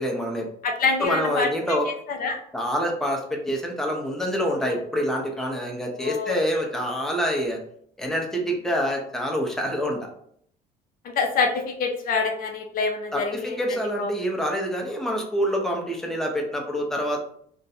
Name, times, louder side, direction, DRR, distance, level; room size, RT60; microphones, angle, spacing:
voice 1, 0.0-0.5 1.0-1.9 2.5-7.6 8.0-10.1 13.1-17.2, equal, 5° left, 0 dB, 0.7 m, -26 dB
voice 2, 0.6-1.5 1.9-2.4 4.6-4.8 6.0-6.4 11.0-13.6 14.0-14.1, left 4 dB, 55° left, 3 dB, 0.5 m, -26 dB
2.6 x 2.2 x 4.1 m, 0.65 s
cardioid pair, 110°, 17 cm